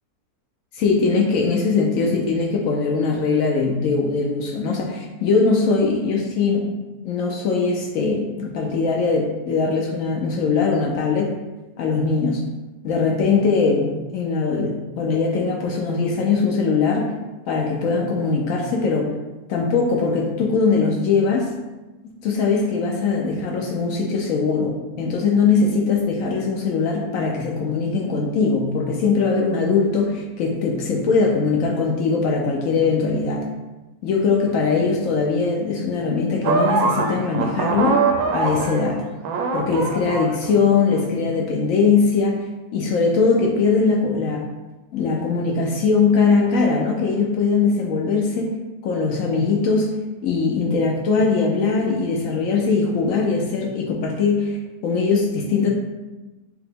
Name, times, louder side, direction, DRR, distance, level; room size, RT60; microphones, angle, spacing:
voice 1, 0.7-6.7 7.0-11.3 11.8-12.4 12.8-17.1 17.5-19.1 19.5-21.5 22.2-33.5 34.0-38.0 38.3-39.0 39.5-42.4 42.7-44.4 44.9-48.5 48.8-50.0 50.2-55.7, left 4 dB, 70° left, -1 dB, 0.9 m, -21 dB
sound 1, 36.4-39.0 39.2-41.0, right 4 dB, 75° right, 1.0 m, -22 dB
4.7 x 2.1 x 3.4 m, 1.1 s
omnidirectional pair, 1.7 m